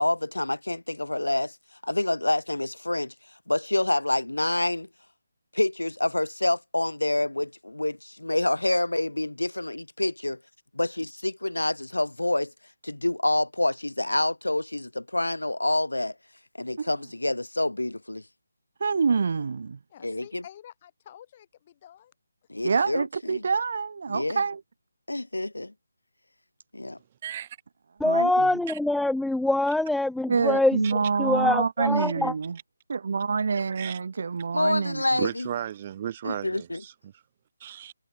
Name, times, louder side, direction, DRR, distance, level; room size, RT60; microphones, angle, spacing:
voice 1, 0.0-1.6 1.8-3.1 3.5-4.9 5.5-10.4 10.8-12.5 12.8-16.1 16.6-18.2 20.0-20.4 22.5-23.5 24.1-24.4 25.1-25.7 26.7-27.0 34.5-35.5 36.2-36.8, left 1 dB, 80° left, 2.5 m, -27 dB
voice 2, 18.8-19.8 22.6-24.6 28.0-28.5 30.3-32.6 32.9-35.0, right 5 dB, 50° right, 0.5 m, -26 dB
voice 3, 19.9-22.1, left 11 dB, 30° left, 4.8 m, -49 dB
voice 4, 27.2-27.6 28.7-28.8 30.8-30.9 33.7-34.0 35.2-37.2 37.6-37.9, right 10 dB, 30° right, 4.6 m, -34 dB
voice 5, 28.0-32.3, left 2 dB, ahead, 0.6 m, -24 dB
figure-of-eight pair, 150°, 0 cm